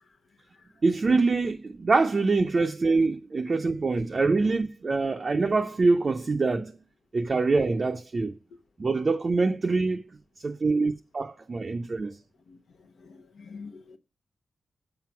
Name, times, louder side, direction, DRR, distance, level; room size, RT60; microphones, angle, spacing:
voice 1, 0.8-6.7 7.1-8.3 8.8-10.0 10.4-12.1, right 3 dB, 35° right, 0.5 m, -24 dB
voice 2, 13.0-14.0, left 4 dB, 75° left, 0.9 m, -45 dB
7.6 x 5.0 x 5.8 m
wide cardioid pair, 175°, 0 cm